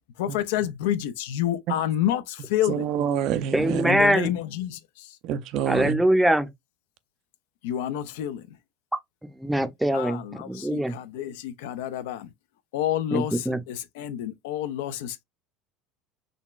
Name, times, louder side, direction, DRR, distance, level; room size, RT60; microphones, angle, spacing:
voice 1, 0.2-2.9 3.8-5.2 7.6-8.6 9.9-12.3 12.7-15.2, left 11 dB, 85° left, 0.4 m, -29 dB
voice 2, 2.7-4.0 5.2-6.0, right 9 dB, 60° right, 0.4 m, -27 dB
voice 3, 3.5-4.3 5.7-6.5 8.9-9.0 9.4-10.9 13.1-13.6, right 1 dB, 5° right, 0.5 m, -23 dB
3.8 x 2.2 x 2.4 m
supercardioid pair, 110°, 0 cm